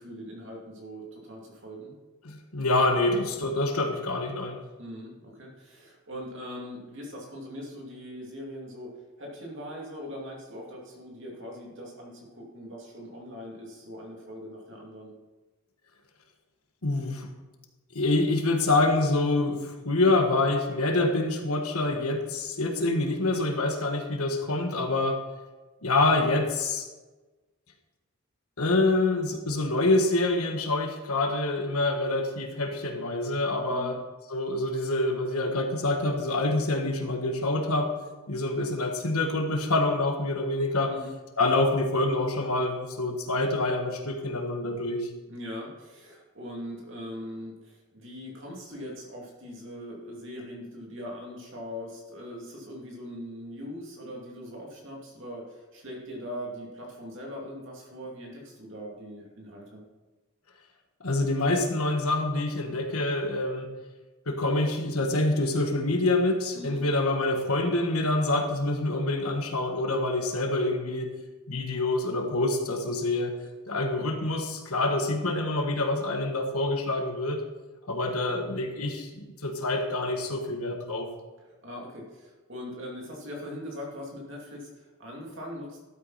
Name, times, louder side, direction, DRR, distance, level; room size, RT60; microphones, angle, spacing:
voice 1, 0.0-1.9 4.8-8.9 9.2-15.1 33.7-34.0 40.9-41.1 45.3-59.8 66.5-66.8 81.6-85.8, equal, 55° right, -1 dB, 2.7 m, -41 dB
voice 2, 2.2-4.6 16.8-17.3 17.9-25.2 25.8-26.8 28.6-34.0 34.3-37.9 38.3-40.9 41.4-45.1 61.0-63.7 64.3-71.1 71.5-73.4 73.7-77.4 77.9-81.1, left 2 dB, 85° left, 4 dB, 1.5 m, -26 dB
12.5 x 8.3 x 4.2 m, 1.2 s
head